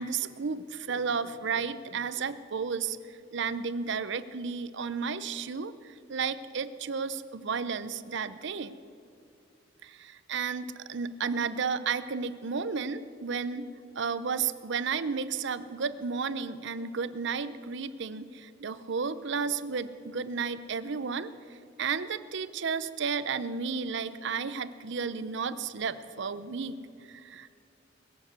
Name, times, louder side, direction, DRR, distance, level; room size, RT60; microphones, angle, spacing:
voice 1, 0.0-3.0 3.3-8.8 9.8-13.7 14.0-27.6, right 5 dB, 65° right, 14 dB, 0.6 m, -33 dB
22.0 x 7.4 x 7.9 m, 2.5 s
head